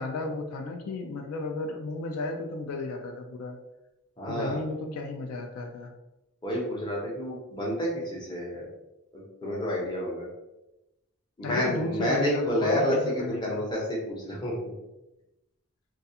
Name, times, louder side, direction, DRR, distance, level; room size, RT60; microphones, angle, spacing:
voice 1, 0.0-3.6 4.3-5.9 11.4-13.7, left 3 dB, 80° left, 4 dB, 0.3 m, -33 dB
voice 2, 4.2-4.6 6.4-8.7 9.1-10.3 11.4-14.7, equal, 20° left, -4 dB, 0.6 m, -29 dB
2.4 x 2.3 x 2.7 m, 0.96 s
head